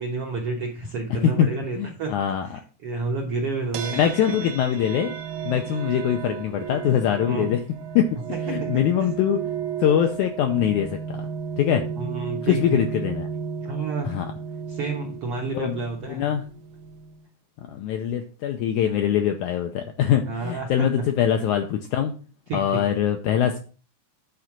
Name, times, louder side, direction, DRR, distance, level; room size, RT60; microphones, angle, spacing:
voice 1, 0.0-2.1 2.5-4.0 7.3-7.5 8.6-9.1 12.0-12.8 13.6-14.1 14.7-16.3 20.3-20.9 22.5-22.8, right 3 dB, 65° right, 0 dB, 1.4 m, -30 dB
voice 2, 1.8-2.5 3.9-5.1 5.4-7.6 8.0-9.4 9.8-11.3 11.6-11.8 12.4-13.3 14.0-14.3 15.5-15.8 16.1-16.4 17.7-22.1 22.5-23.6, left 9 dB, 80° left, 5 dB, 1.8 m, -23 dB
sound 1, 3.7-17.3, right 7 dB, 85° right, 1.6 m, -34 dB
9.5 x 3.9 x 5.9 m, 0.38 s
omnidirectional pair, 4.2 m